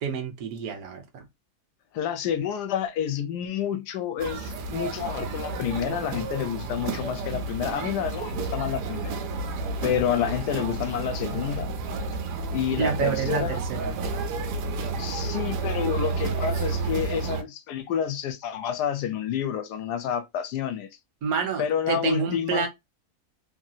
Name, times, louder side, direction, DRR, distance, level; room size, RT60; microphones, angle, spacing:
voice 1, 0.0-1.3 12.8-14.0 21.2-22.7, right 6 dB, 65° right, 1.3 m, -28 dB
voice 2, 1.9-9.2 9.8-11.7 12.5-13.6 15.0-20.9 21.6-22.7, left 9 dB, 80° left, 1.2 m, -29 dB
sound 1, 4.2-17.4, right 4 dB, 90° right, 1.3 m, -31 dB
3.2 x 2.7 x 2.2 m
omnidirectional pair, 1.7 m